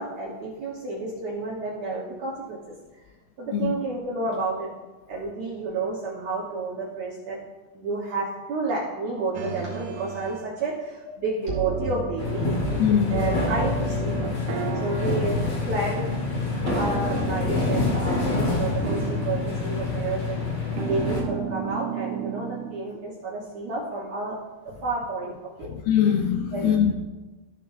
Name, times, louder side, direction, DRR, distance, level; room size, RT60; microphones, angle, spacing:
voice 1, 0.0-2.7 3.4-4.7 5.1-7.4 7.7-12.5 13.1-14.3 14.8-15.4 15.7-16.2 16.7-20.4 20.9-25.7 26.5-26.9, right 3 dB, 65° right, -6 dB, 1.7 m, -30 dB
sound 1, 9.3-10.5 11.5-12.8 13.1-16.1 16.7-18.6 18.8-19.7 20.8-22.9, right 6 dB, 85° right, 2.8 m, -33 dB
sound 2, 12.2-21.2, left 3 dB, 45° left, 2.2 m, -27 dB
voice 2, 12.8-13.2 15.2-15.3 25.7-26.9, left 9 dB, 80° left, 5 dB, 2.2 m, -22 dB
14.5 x 5.9 x 2.6 m, 1.2 s
omnidirectional pair, 4.5 m